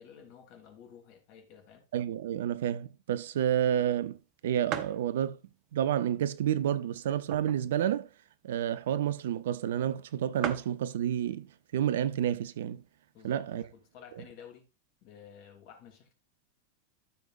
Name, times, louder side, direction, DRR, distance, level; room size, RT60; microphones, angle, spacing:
voice 1, 0.0-1.9 13.1-14.7 15.0-16.1, left 8 dB, 50° left, 3.2 m, -52 dB
voice 2, 1.9-4.2 4.4-5.4 5.7-8.1 8.4-11.5 11.7-12.8 13.2-13.6, right 10 dB, 65° right, 0.8 m, -29 dB
sound 1, 3.7-3.8 4.2-4.3 4.7-5.1 5.7-5.8 6.6-7.8 8.1-8.2 8.4-8.7 9.4-9.5 9.8-9.9 10.1-10.2 10.4-10.8 11.7-12.0 12.6-12.7 12.8-13.6, right 10 dB, 45° right, 1.2 m, -38 dB
13.5 x 6.9 x 2.6 m
figure-of-eight pair, 90°, 0 cm